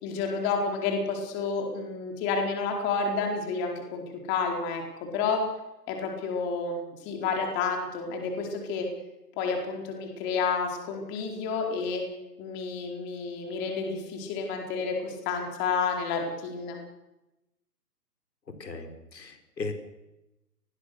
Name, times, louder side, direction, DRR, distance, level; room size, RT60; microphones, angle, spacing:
voice 1, 0.0-4.8 5.1-5.4 5.9-8.9 9.4-12.0 12.4-16.8, left 5 dB, 20° left, 2 dB, 4.4 m, -30 dB
voice 2, 18.5-19.7, left 3 dB, 75° left, 6 dB, 4.8 m, -37 dB
29.0 x 20.5 x 6.7 m, 0.97 s
hypercardioid pair, 145°, 50 cm